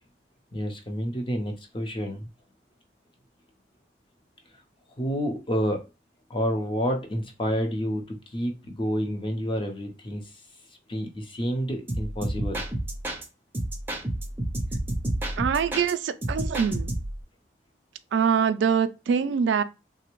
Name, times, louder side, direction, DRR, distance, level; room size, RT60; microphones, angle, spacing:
voice 1, 0.5-2.2 5.0-5.9 6.3-10.3 10.9-12.6, equal, 30° left, 0.7 m, -29 dB
sound 1, 11.9-13.2 13.5-15.9 16.2-17.2, right 1 dB, 10° right, 0.6 m, -30 dB
voice 2, 15.4-16.9 18.1-19.6, right 7 dB, 90° right, 0.3 m, -24 dB
3.2 x 2.1 x 3.0 m
head